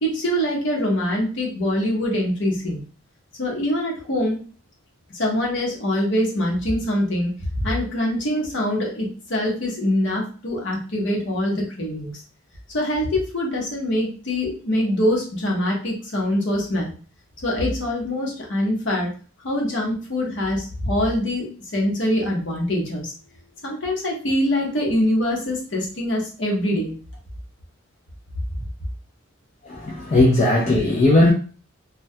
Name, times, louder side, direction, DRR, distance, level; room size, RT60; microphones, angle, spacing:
voice 1, 0.0-2.8 3.4-4.4 5.1-7.3 7.6-12.1 12.7-16.9 17.4-19.1 19.4-23.1 23.6-26.9, left 1 dB, 65° left, 0.8 m, -24 dB
voice 2, 29.7-31.3, left 2 dB, 35° left, 0.3 m, -17 dB
2.2 x 2.1 x 2.6 m
head